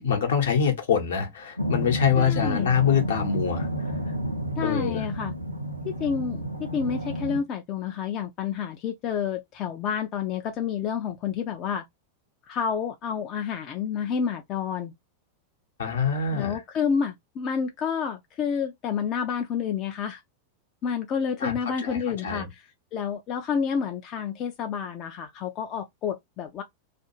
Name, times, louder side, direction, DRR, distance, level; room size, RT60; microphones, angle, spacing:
voice 1, 0.0-3.7 4.6-5.0 15.8-16.6 21.4-21.6 21.8-22.5, left 7 dB, 65° left, 0.9 m, -24 dB
sound 1, 1.6-7.4, equal, 90° right, 0.6 m, -31 dB
voice 2, 2.2-2.7 4.6-5.3 5.8-11.8 12.5-14.9 16.3-20.2 20.8-22.6 22.9-26.6, left 7 dB, 35° left, 0.4 m, -29 dB
2.5 x 2.3 x 2.8 m
figure-of-eight pair, 90°, 0 cm